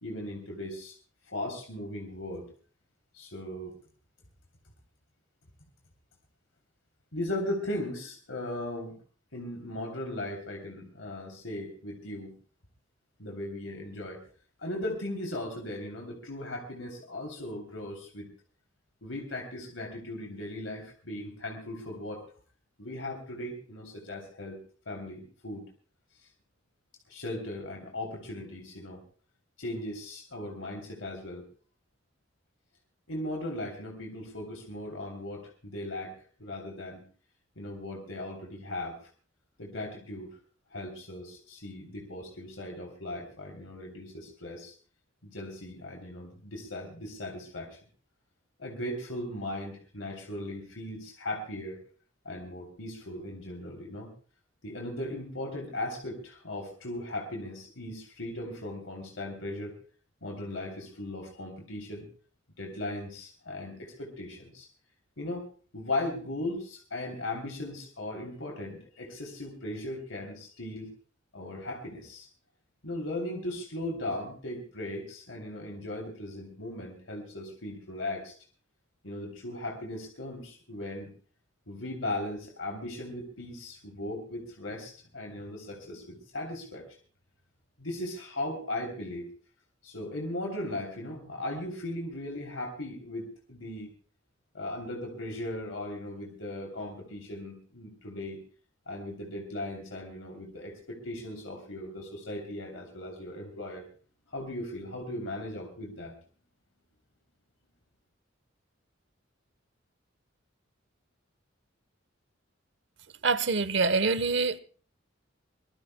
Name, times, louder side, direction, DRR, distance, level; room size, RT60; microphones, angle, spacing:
voice 1, 0.0-0.9 1.3-2.5 3.1-3.7 7.1-9.0 9.3-12.3 13.2-14.2 14.6-18.3 19.0-22.2 22.8-24.6 24.8-25.7 26.2-26.3 27.1-29.0 29.6-31.4 33.1-36.1 36.4-37.0 37.6-39.0 39.6-40.4 40.7-44.7 45.2-47.8 48.6-51.8 52.2-54.1 54.6-59.7 60.2-62.1 62.6-64.7 65.2-65.5 65.7-70.9 71.3-72.3 72.8-78.3 79.0-81.1 81.7-86.9 87.8-89.3 89.8-93.9 94.5-98.4 98.9-103.9 104.3-106.1, left 1 dB, 80° left, 3.2 m, -38 dB
voice 2, 113.2-114.6, right 4 dB, 65° right, 1.0 m, -25 dB
24.5 x 20.0 x 2.2 m
head